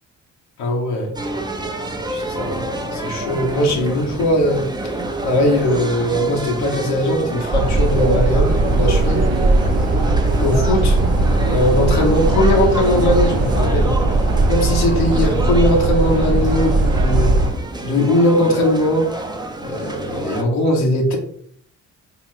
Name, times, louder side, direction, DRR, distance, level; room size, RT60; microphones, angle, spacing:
voice 1, 0.6-1.1 2.1-4.6 5.2-9.2 10.4-11.0 11.4-13.9 14.5-17.3 17.8-19.1 19.6-21.2, left 1 dB, 75° left, 0 dB, 1.0 m, -19 dB
sound 1, 1.1-20.4, right 2 dB, 10° right, 0.6 m, -28 dB
sound 2, 7.5-17.5, right 2 dB, 40° right, 1.0 m, -18 dB
sound 3, 8.5-17.3, right 5 dB, 70° right, 0.7 m, -29 dB
3.4 x 2.9 x 3.1 m, 0.62 s
hypercardioid pair, 45°, 39 cm